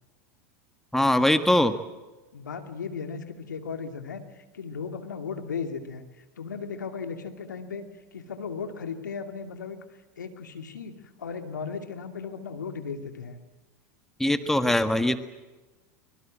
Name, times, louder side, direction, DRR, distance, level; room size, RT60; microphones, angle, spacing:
voice 1, 0.9-1.7 14.2-15.2, left 1 dB, 5° left, 10 dB, 1.7 m, -22 dB
voice 2, 2.3-7.9 8.1-9.8 10.2-13.4, left 5 dB, 90° left, 7 dB, 2.5 m, -36 dB
24.5 x 22.5 x 7.5 m, 1.2 s
hypercardioid pair, 100°, 10 cm